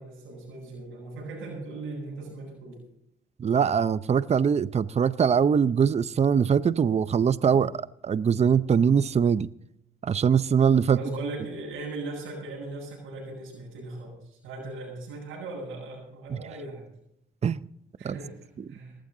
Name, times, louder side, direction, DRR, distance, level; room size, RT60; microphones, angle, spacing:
voice 1, 0.0-2.8 10.9-16.9 18.0-19.0, right 2 dB, 90° right, -6 dB, 7.9 m, -38 dB
voice 2, 3.4-7.7 8.0-9.5 10.0-11.0 17.4-17.6 18.0-18.1, right 7 dB, 35° right, 16 dB, 0.6 m, -22 dB
18.5 x 14.5 x 3.8 m, 0.77 s
cardioid pair, 90°, 20 cm